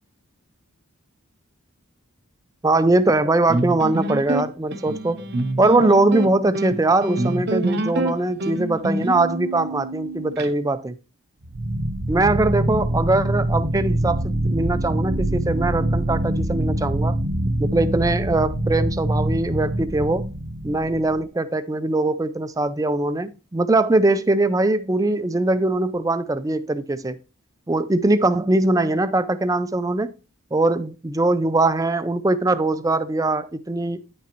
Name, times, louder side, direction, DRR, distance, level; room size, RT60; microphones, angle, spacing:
voice 1, 2.6-5.2 5.6-11.0 12.1-17.2 17.6-20.2 20.6-27.2 27.7-30.1 30.5-34.0, right 2 dB, 15° right, 0.4 m, -21 dB
sound 1, 3.5-10.5, right 1 dB, 50° right, 0.7 m, -26 dB
sound 2, 11.4-21.2, right 1 dB, 80° right, 0.9 m, -24 dB
9.4 x 5.8 x 2.9 m
head